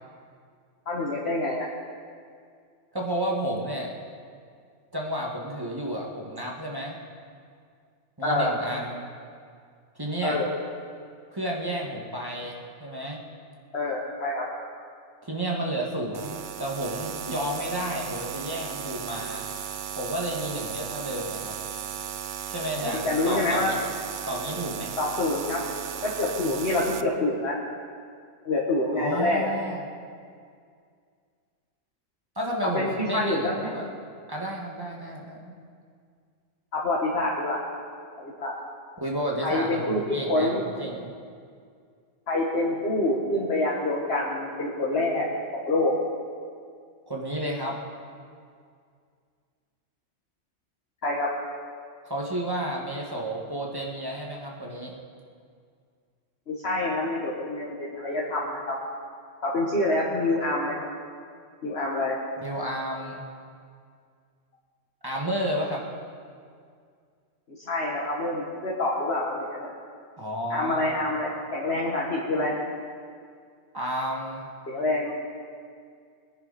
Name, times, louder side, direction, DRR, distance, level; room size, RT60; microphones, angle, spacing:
voice 1, 0.8-1.7 8.2-8.5 10.2-10.5 13.7-14.5 22.8-23.7 25.0-25.6 26.0-27.5 28.4-29.5 32.6-33.7 36.7-37.6 38.2-38.5 39.4-40.0 40.3-40.7 42.3-45.3 45.5-45.9 51.0-51.3 56.5-58.8 59.4-60.9 61.6-62.2 67.5-69.7 70.5-72.5 74.7-75.1, left 2 dB, 55° left, -4 dB, 1.8 m, -26 dB
voice 2, 2.9-3.9 4.9-7.0 8.2-9.1 10.0-10.4 11.3-13.2 15.2-19.5 20.0-21.5 22.5-23.8 24.3-25.0 28.9-29.8 32.4-33.8 34.3-35.6 39.0-41.1 47.1-47.8 52.1-55.0 62.4-63.2 65.0-65.8 70.2-71.0 73.7-74.5, right 1 dB, 20° right, -2 dB, 1.9 m, -31 dB
sound 1, 16.1-27.0, right 9 dB, 55° right, 0.6 m, -36 dB
22.5 x 10.5 x 4.2 m, 2.2 s
omnidirectional pair, 1.3 m